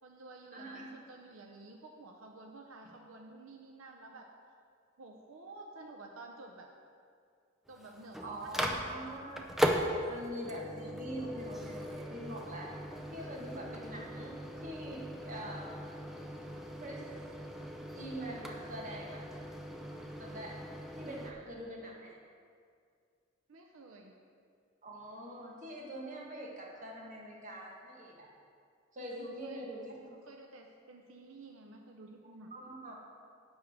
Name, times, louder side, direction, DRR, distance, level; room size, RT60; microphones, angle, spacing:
voice 1, 0.0-4.3 5.0-6.7 7.7-9.2 23.5-24.1 29.2-29.6 30.1-32.5, right 2 dB, 80° right, 2 dB, 0.7 m, -52 dB
voice 2, 0.5-0.9 8.2-9.5 10.1-12.7 13.1-16.0 16.8-17.1 17.9-19.3 20.2-20.6 20.9-22.2 24.8-28.3 28.9-29.8 32.5-33.0, right 1 dB, 40° right, -2 dB, 1.5 m, -44 dB
Microwave oven, 7.7-21.3, equal, ahead, 0.5 m, -39 dB
10.5 x 3.7 x 7.3 m, 2.2 s
head